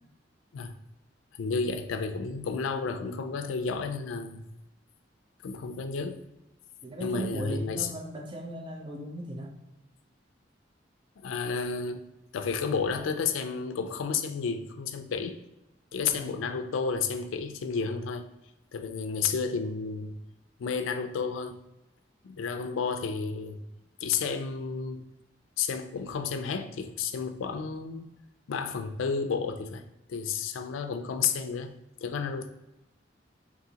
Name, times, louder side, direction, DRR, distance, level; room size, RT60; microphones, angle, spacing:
voice 1, 1.4-4.4 5.4-6.2 7.0-7.9 11.2-12.0 12.3-15.4 15.9-18.3 18.7-20.2 20.6-21.6 22.2-23.6 24.0-25.1 25.6-28.1 28.5-31.7 32.0-32.5, left 5 dB, 90° left, 7 dB, 0.4 m, -31 dB
voice 2, 6.8-9.5 16.1-16.6, right 2 dB, 25° right, 2 dB, 0.5 m, -38 dB
3.8 x 2.5 x 2.8 m, 0.93 s
head